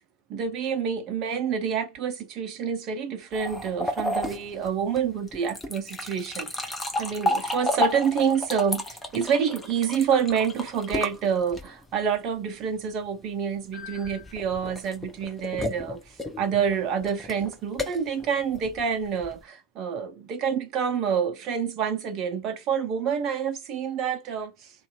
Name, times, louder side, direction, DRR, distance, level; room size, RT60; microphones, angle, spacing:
voice 1, 0.3-16.0 16.4-24.7, right 7 dB, 35° right, 0.5 m, -28 dB
sound 1, 3.3-12.0 13.7-19.4, left 1 dB, 10° left, 0.6 m, -32 dB
2.5 x 2.2 x 2.3 m
figure-of-eight pair, 90°, 0 cm